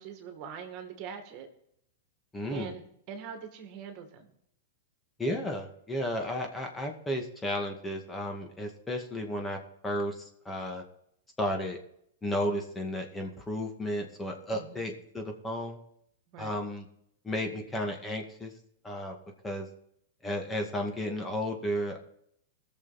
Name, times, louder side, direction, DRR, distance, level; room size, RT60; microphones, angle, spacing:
voice 1, 0.0-1.5 2.5-4.3 14.5-14.9 16.3-16.6, right 7 dB, 45° right, 5 dB, 2.2 m, -43 dB
voice 2, 2.3-2.7 5.2-9.6 9.8-10.8 11.4-11.8 12.2-15.8 16.4-16.9 17.2-18.5 18.8-19.2 19.4-19.7 20.2-22.1, equal, 10° left, 3 dB, 2.1 m, -33 dB
18.5 x 6.9 x 4.3 m, 0.71 s
hypercardioid pair, 110°, 0 cm